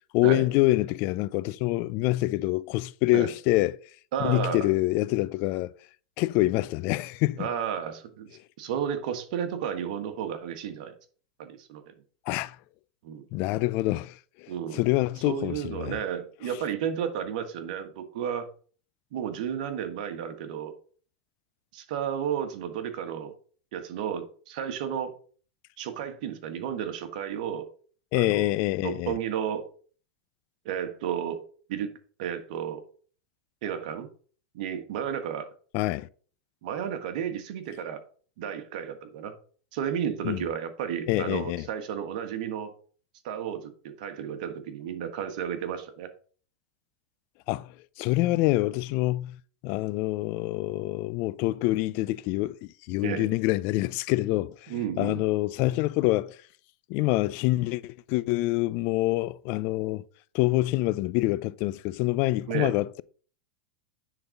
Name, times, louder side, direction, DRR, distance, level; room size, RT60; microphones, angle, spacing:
voice 1, 0.1-3.8 4.2-5.7 6.2-7.5 12.3-12.6 13.3-16.0 28.1-29.1 35.7-36.1 40.2-40.4 41.1-41.7 47.5-47.7 48.0-49.4 49.6-52.6 52.9-56.4 56.9-60.0 60.3-63.0, left 18 dB, 50° left, 0.4 m, -26 dB
voice 2, 4.1-4.7 7.4-8.3 8.6-10.9 11.4-11.9 13.0-13.3 14.5-14.8 15.2-18.5 19.1-20.7 21.7-23.3 23.7-25.1 25.8-27.7 28.1-28.5 28.8-29.7 30.6-31.4 31.7-31.9 32.2-32.8 33.6-34.1 34.5-35.5 36.6-38.0 38.4-39.3 39.7-42.7 43.2-46.1 53.0-53.3 54.7-55.2 62.5-62.8, right 8 dB, 65° right, 1.5 m, -32 dB
9.7 x 4.0 x 5.2 m
hypercardioid pair, 105°, 5 cm